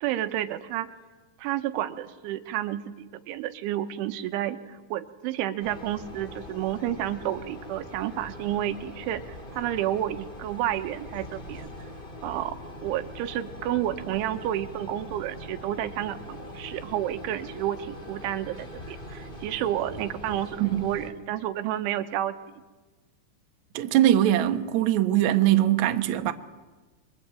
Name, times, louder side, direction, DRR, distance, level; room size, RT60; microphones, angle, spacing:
voice 1, 0.0-0.9 1.4-11.7 12.2-12.6 12.8-22.4, right 12 dB, 90° right, 3.6 m, -30 dB
sound 1, 5.6-21.1, left 1 dB, 15° left, 1.8 m, -42 dB
voice 2, 23.7-26.3, right 12 dB, 70° right, 1.7 m, -22 dB
29.0 x 23.0 x 9.0 m
omnidirectional pair, 5.4 m